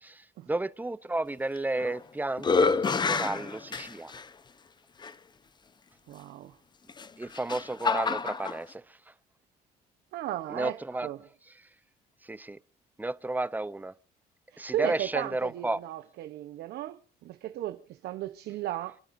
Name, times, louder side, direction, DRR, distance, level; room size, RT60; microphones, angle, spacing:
voice 1, 0.5-4.1 7.2-8.8 10.5-11.1 12.3-12.6 13.0-13.9 14.6-15.8, right 2 dB, 10° right, 0.6 m, -32 dB
sound 1, 1.6-2.0 2.4-4.2 5.0-5.1 6.9-8.6, left 4 dB, 25° left, 0.8 m, -28 dB
voice 2, 6.1-6.5 10.1-10.8 11.0-11.2 14.5-19.0, right 13 dB, 75° right, 0.9 m, -35 dB
29.5 x 11.0 x 2.6 m
cardioid pair, 110°, 17 cm